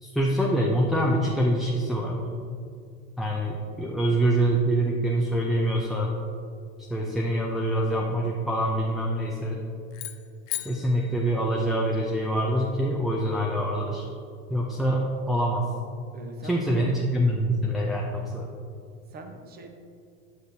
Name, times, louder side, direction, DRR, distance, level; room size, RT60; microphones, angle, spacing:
voice 1, 0.0-2.2 3.2-6.1 6.9-9.6 10.6-14.1 14.5-15.7 16.4-18.5, right 1 dB, ahead, -3 dB, 0.5 m, -25 dB
sound 1, 9.9-12.2, left 15 dB, 50° left, 0.6 m, -38 dB
voice 2, 14.7-15.1 16.1-16.9 19.1-19.7, right 3 dB, 30° right, 4 dB, 0.9 m, -43 dB
7.9 x 6.6 x 2.7 m, 2.3 s
supercardioid pair, 115°, 30 cm